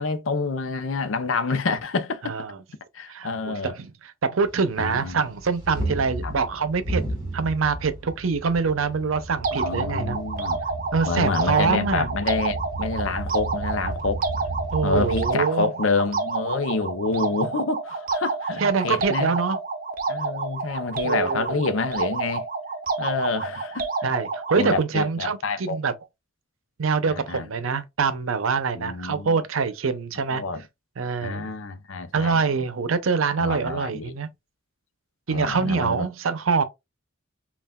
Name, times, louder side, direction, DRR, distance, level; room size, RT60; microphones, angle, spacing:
voice 1, 0.0-2.4 2.9-3.7 4.8-5.2 6.2-6.3 9.5-10.6 11.1-14.2 14.8-19.4 20.1-22.4 23.0-23.9 24.6-25.8 27.1-27.5 28.7-29.4 30.3-30.6 31.2-32.4 33.4-34.1 35.3-36.1, left 3 dB, 75° left, 0.6 m, -27 dB
voice 2, 2.2-2.6 3.1-7.0 7.3-10.2 10.9-12.1 14.7-15.7 17.1-17.5 18.6-19.6 21.0-21.7 24.0-25.9 26.8-30.4 31.0-31.5 32.1-34.3 35.3-36.6, right 5 dB, 85° right, 0.6 m, -25 dB
sound 1, 4.4-15.3, right 2 dB, 20° right, 1.8 m, -33 dB
sound 2, 9.4-24.8, right 3 dB, 45° right, 0.7 m, -29 dB
5.5 x 2.4 x 2.3 m
head